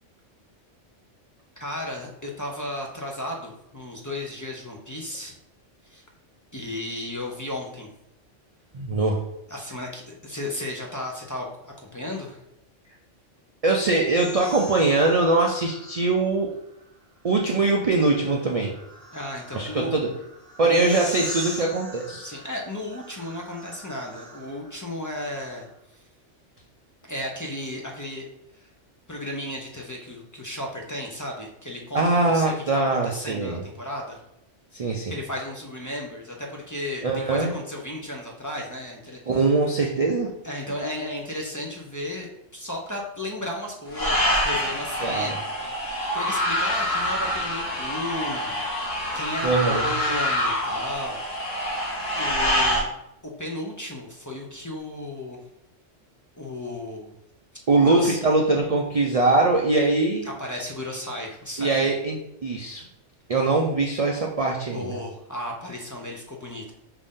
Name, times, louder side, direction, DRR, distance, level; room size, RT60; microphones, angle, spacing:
voice 1, 1.6-5.3 5.8-6.0 6.5-7.9 9.5-12.4 19.1-19.9 20.6-21.2 22.2-25.7 25.9-26.0 27.1-28.2 28.5-28.7 29.1-34.2 34.9-39.2 40.4-51.7 52.2-52.9 53.2-55.4 56.4-57.1 57.8-58.2 60.2-61.9 64.7-66.7, left 1 dB, 25° left, -1 dB, 0.4 m, -34 dB
voice 2, 8.7-9.2 13.6-16.5 17.2-18.7 19.5-20.1 20.6-22.3 31.9-33.6 34.7-35.1 37.0-37.5 39.3-40.3 45.0-45.3 49.4-49.9 57.7-60.3 61.6-62.8 63.3-65.0, right 3 dB, 65° right, 0 dB, 0.3 m, -22 dB
sound 1, 14.1-16.1 17.6-24.7, left 1 dB, 5° left, 1.0 m, -40 dB
sound 2, 43.9-52.8, equal, 85° left, 1.6 m, -26 dB
5.5 x 2.6 x 3.6 m, 0.81 s
omnidirectional pair, 1.3 m